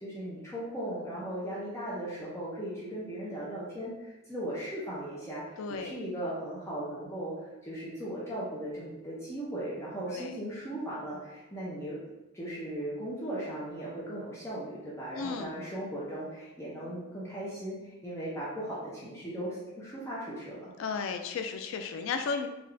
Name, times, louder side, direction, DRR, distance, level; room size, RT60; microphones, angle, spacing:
voice 1, 0.0-12.0 12.3-20.7, right 1 dB, 15° left, -8 dB, 0.6 m, -37 dB
voice 2, 5.6-6.0 10.1-10.4 15.1-15.5 20.8-22.5, left 5 dB, 70° left, 6 dB, 0.3 m, -34 dB
3.7 x 2.4 x 3.2 m, 1.0 s
head